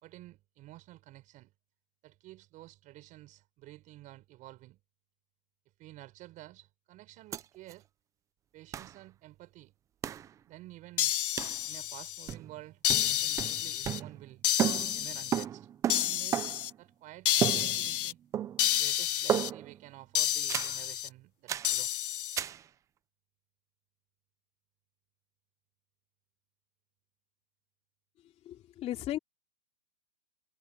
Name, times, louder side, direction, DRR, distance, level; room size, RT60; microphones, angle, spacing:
voice 1, 0.0-1.5 2.0-4.8 5.8-7.8 8.5-9.7 10.5-11.1 11.7-14.4 14.9-15.7 16.0-18.2 18.8-21.9, right 17 dB, 25° right, 5.0 m, -51 dB
sound 1, 7.3-7.4 7.7-7.8 8.7-8.9 10.0-10.3 11.4-11.6 12.3-12.6 12.9-14.3 14.6-16.8 17.4-18.1 18.3-18.8 19.3-19.8 20.5-20.8 21.5-21.8 22.4-22.6, right 10 dB, 10° right, 0.6 m, -33 dB
sound 2, 11.0-12.3 12.8-14.0 14.4-15.4 15.9-16.7 17.3-18.1 18.6-19.5 20.2-21.1 21.6-22.4, left 12 dB, 60° left, 1.2 m, -30 dB
voice 2, 28.4-29.2, left 13 dB, 20° left, 2.8 m, -35 dB
hypercardioid pair, 145°, 30 cm